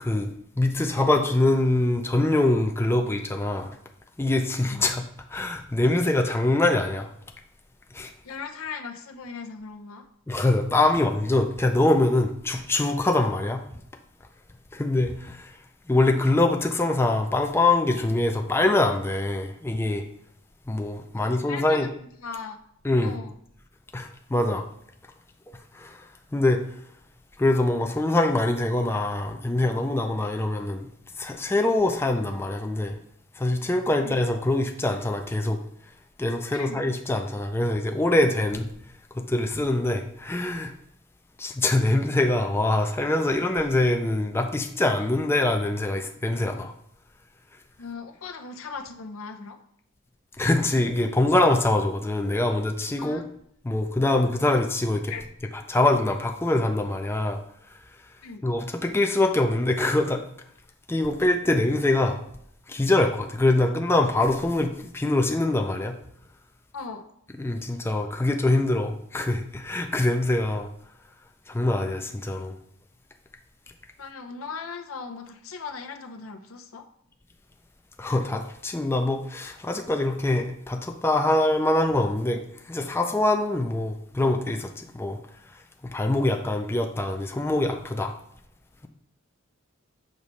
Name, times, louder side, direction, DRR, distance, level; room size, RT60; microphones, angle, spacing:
voice 1, 0.6-3.7 4.2-5.0 5.3-7.1 7.9-8.1 10.3-13.6 14.7-15.4 15.9-20.0 20.7-21.9 22.8-23.2 23.9-24.6 25.8-25.9 26.3-26.6 27.4-30.8 31.2-32.9 33.4-35.6 36.2-38.7 39.3-40.7 41.4-46.7 50.4-53.2 53.6-55.1 55.7-57.4 58.4-60.2 60.9-62.2 62.7-65.9 67.4-70.7 71.5-72.5 78.0-82.4 82.7-84.7 84.9-85.2 85.9-88.1, left 2 dB, 10° left, 4 dB, 0.4 m, -24 dB
voice 2, 8.2-10.1 21.1-22.6 23.0-23.3 33.9-34.2 36.5-36.8 47.8-49.6 53.0-53.2 55.1-55.2 58.2-58.5 66.7-67.1 74.0-76.9, left 5 dB, 80° left, 5 dB, 0.7 m, -38 dB
6.4 x 3.1 x 5.3 m, 0.70 s
head